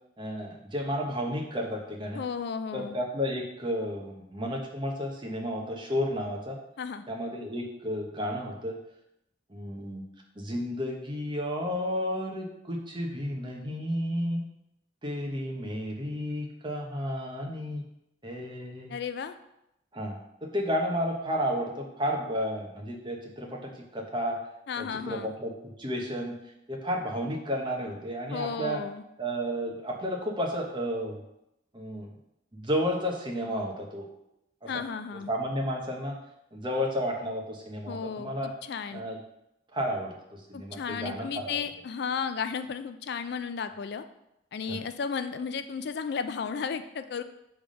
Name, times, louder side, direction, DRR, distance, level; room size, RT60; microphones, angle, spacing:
voice 1, 0.2-2.2 2.7-6.6 7.1-8.8 9.5-10.0 10.3-14.4 15.0-17.8 18.2-18.9 19.9-24.4 24.8-26.3 26.7-28.8 29.2-31.1 31.7-32.1 32.5-34.1 34.6-34.8 35.3-36.2 36.5-38.5 38.9-39.2 39.7-41.6 44.7-44.8, equal, 25° right, 0 dB, 1.0 m, -32 dB
voice 2, 2.1-3.0 6.8-7.0 18.9-19.4 24.7-25.4 28.3-29.0 34.7-35.3 37.9-39.0 40.5-44.0 44.5-47.2, left 6 dB, 60° left, 10 dB, 0.3 m, -34 dB
7.1 x 3.5 x 5.1 m, 0.84 s
head